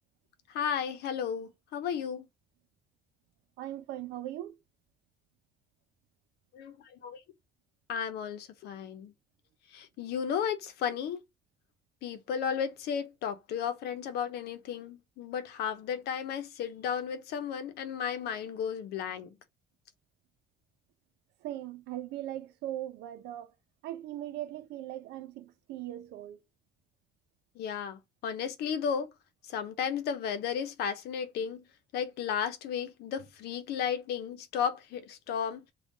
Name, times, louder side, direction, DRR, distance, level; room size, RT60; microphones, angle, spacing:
voice 1, 0.5-2.3 6.5-7.2 7.9-9.1 9.7-11.2 12.0-19.3 27.6-29.1 29.5-31.6 31.9-35.6, left 7 dB, 75° left, 0.8 m, -34 dB
voice 2, 3.6-4.6 21.4-23.5 23.8-26.4, right 13 dB, 85° right, 0.6 m, -39 dB
3.6 x 2.4 x 3.9 m
cardioid pair, 110°, 17 cm